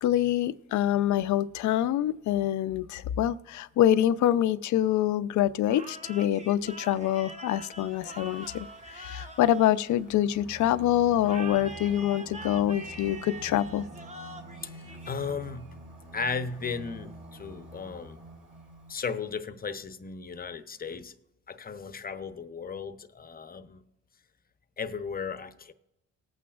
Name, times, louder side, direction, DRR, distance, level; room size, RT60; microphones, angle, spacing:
voice 1, 0.0-13.9, left 12 dB, 75° left, 0.6 m, -26 dB
sound 1, 5.6-10.5 11.2-15.6, right 2 dB, 25° right, 1.0 m, -44 dB
Singing, 7.9-19.2, right 1 dB, 40° right, 3.0 m, -48 dB
voice 2, 14.6-15.8 16.1-18.2 18.9-21.1 21.5-23.8 24.8-25.7, left 5 dB, 30° left, 0.8 m, -36 dB
19.5 x 8.5 x 2.4 m
cardioid pair, 90°, 30 cm